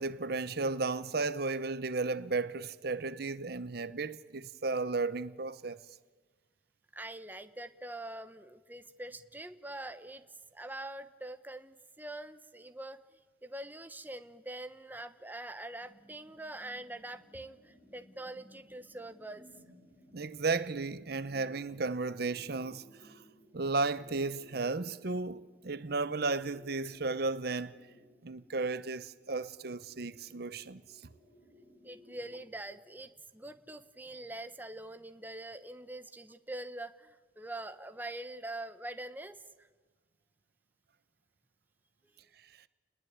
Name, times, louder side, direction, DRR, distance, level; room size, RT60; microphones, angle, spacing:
voice 1, 0.0-5.8 20.1-23.1 23.5-27.7 28.2-30.8, right 3 dB, 55° right, 0.8 m, -34 dB
voice 2, 6.9-10.2 10.5-19.5 31.8-39.7, right 1 dB, 10° right, 1.0 m, -44 dB
sound 1, 15.8-32.5, equal, 40° left, 4.4 m, -61 dB
29.5 x 20.5 x 9.5 m
head